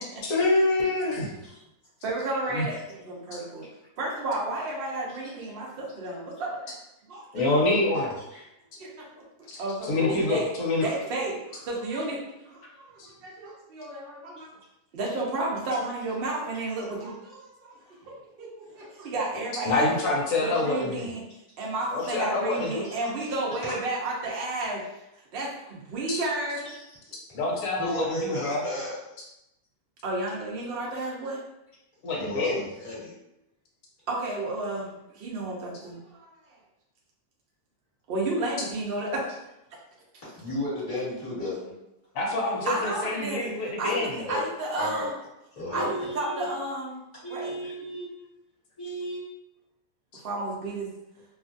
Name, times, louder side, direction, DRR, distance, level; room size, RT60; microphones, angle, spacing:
voice 1, 0.2-1.4 2.5-2.7 7.3-8.1 9.5-9.6 9.9-10.8 13.0-13.1 19.7-21.1 21.9-22.9 26.1-26.2 27.3-28.6 32.0-32.6 42.1-44.2, left 2 dB, 60° left, -2 dB, 1.0 m, -26 dB
voice 2, 2.0-3.7 4.0-6.7 7.0-7.4 8.8-9.2 9.6-10.5 10.8-14.5 14.9-17.8 18.1-19.9 20.4-21.2 21.6-24.9 25.3-26.7 30.0-31.4 34.1-36.6 38.1-39.4 42.7-45.1 45.7-47.0 47.3-47.6 50.2-50.9, right 2 dB, 75° right, -3 dB, 0.5 m, -32 dB
voice 3, 27.7-29.0 32.1-33.1 40.4-41.7 44.3-44.4 44.8-45.1 45.5-46.5 47.2-48.1 48.8-49.2, left 1 dB, 20° left, -10 dB, 1.4 m, -33 dB
2.7 x 2.4 x 2.5 m, 0.89 s
omnidirectional pair, 1.9 m